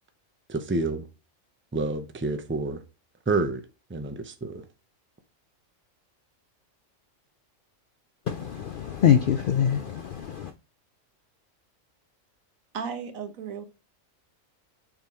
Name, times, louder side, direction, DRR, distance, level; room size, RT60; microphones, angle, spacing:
voice 1, 0.5-1.1 1.7-2.8 3.3-3.6 3.9-4.6, right 3 dB, 15° right, 0.5 m, -28 dB
voice 2, 8.3-10.5, left 9 dB, 70° left, 0.5 m, -24 dB
voice 3, 12.7-13.6, right 6 dB, 80° right, 1.5 m, -34 dB
7.1 x 3.8 x 4.3 m
omnidirectional pair, 1.4 m